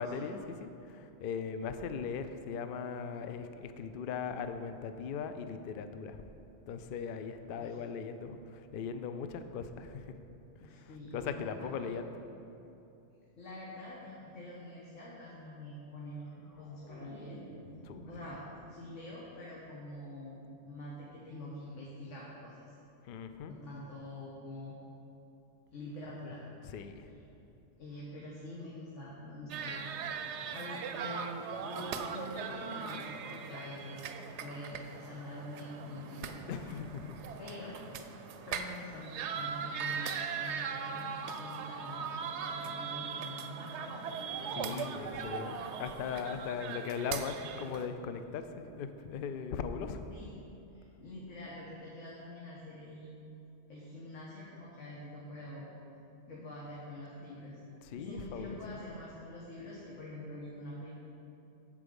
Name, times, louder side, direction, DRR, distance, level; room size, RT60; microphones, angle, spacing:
voice 1, 0.0-6.2 6.7-10.2 10.6-12.0 17.8-18.0 23.0-23.5 26.6-27.1 36.5-37.2 44.6-50.1 57.8-58.6, left 6 dB, 60° left, 9 dB, 0.6 m, -39 dB
voice 2, 10.6-11.9 13.4-17.4 18.0-18.4 18.7-22.7 23.5-24.8 25.7-26.4 27.8-29.9 30.5-34.1 34.4-36.4 37.4-37.8 38.4-41.1 41.4-45.3 50.1-50.3 50.7-53.2 53.7-55.7 56.3-57.6 58.0-60.9, left 1 dB, 80° left, -5 dB, 1.6 m, -46 dB
sound 1, 16.0-19.2 19.6-19.9, equal, 45° left, 1.2 m, -52 dB
sound 2, 29.5-47.9, right 6 dB, 70° right, 0.8 m, -40 dB
Female singing, 44.0-50.2, equal, 5° right, 0.9 m, -55 dB
8.3 x 7.5 x 5.2 m, 2.9 s
omnidirectional pair, 1.3 m